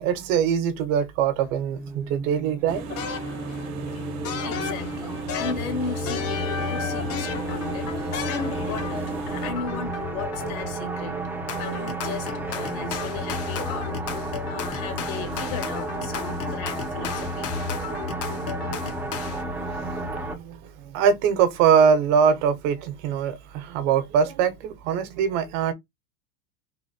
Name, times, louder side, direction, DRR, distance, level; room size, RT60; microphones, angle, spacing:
voice 1, 0.0-2.9 19.3-19.4 19.8-25.7, right 7 dB, 55° right, 1.2 m, -23 dB
sound 1, 1.4-20.3, right 1 dB, 5° right, 0.8 m, -32 dB
sound 2, 2.7-9.5, right 3 dB, 35° right, 1.1 m, -35 dB
sound 3, 2.9-3.7 4.2-9.1 9.4-10.7 11.5-19.4, left 8 dB, 30° left, 0.9 m, -35 dB
voice 2, 4.4-11.2 11.6-17.5 18.3-18.4, left 6 dB, 65° left, 2.1 m, -36 dB
3.9 x 2.9 x 4.3 m
supercardioid pair, 150°, 46 cm